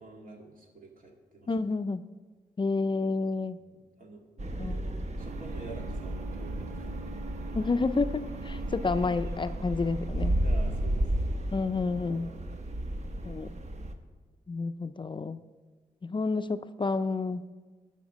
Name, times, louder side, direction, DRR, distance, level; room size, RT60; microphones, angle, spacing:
voice 1, 0.0-1.5 3.7-7.1 10.4-11.6 12.0-12.7, right 3 dB, 65° right, 1 dB, 2.1 m, -49 dB
voice 2, 1.5-2.1 2.6-3.6 4.6-4.7 7.5-10.4 11.5-12.3 13.3-13.5 14.5-15.4 16.0-17.5, left 4 dB, 30° left, 11 dB, 0.4 m, -30 dB
sound 1, 4.4-13.9, right 1 dB, 50° right, 1.0 m, -33 dB
sound 2, 5.2-11.6, right 6 dB, 90° right, 0.6 m, -47 dB
11.5 x 5.7 x 6.3 m, 1.4 s
cardioid pair, 65°, 15 cm